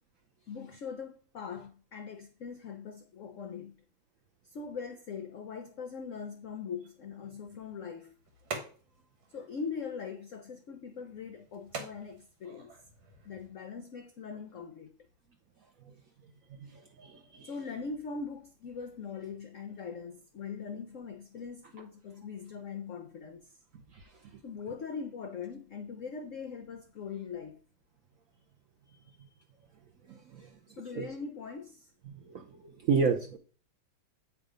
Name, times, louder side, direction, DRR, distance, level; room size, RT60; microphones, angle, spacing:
voice 1, 0.5-3.8 4.4-8.1 9.3-12.7 13.2-14.9 17.4-23.5 24.4-27.6 30.7-31.9, left 5 dB, 70° left, 0.7 m, -41 dB
sound 1, 7.4-13.5, right 4 dB, 85° right, 2.2 m, -47 dB
voice 2, 16.7-17.5 30.1-30.5 30.9-31.1 32.3-33.4, right 5 dB, 65° right, 0.8 m, -31 dB
8.5 x 3.7 x 5.0 m
omnidirectional pair, 2.1 m